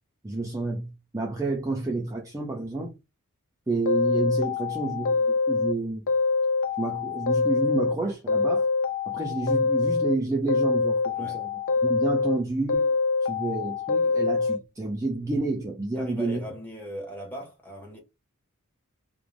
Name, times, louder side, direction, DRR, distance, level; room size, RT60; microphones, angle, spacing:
voice 1, 0.2-2.9 3.7-6.1 6.8-8.7 9.1-12.9 13.2-16.4, right 2 dB, 15° right, 0.4 m, -30 dB
sound 1, 3.8-5.7 6.1-7.9 8.3-10.1 10.5-12.4 12.7-14.6, left 4 dB, 60° left, 0.4 m, -25 dB
voice 2, 16.0-18.0, equal, 10° left, 0.8 m, -39 dB
2.4 x 2.0 x 3.1 m
head